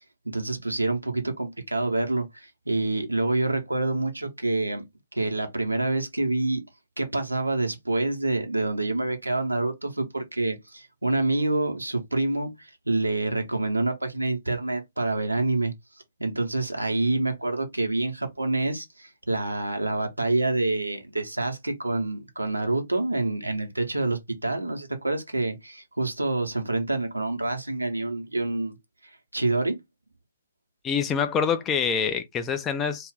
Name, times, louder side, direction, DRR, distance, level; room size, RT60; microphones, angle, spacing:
voice 1, 0.2-4.8 5.1-6.6 7.0-15.7 16.2-28.8 29.3-29.8, right 2 dB, 80° right, 0.8 m, -27 dB
voice 2, 30.8-33.1, left 6 dB, 15° left, 0.3 m, -26 dB
2.4 x 2.3 x 3.4 m
figure-of-eight pair, 130°, 0 cm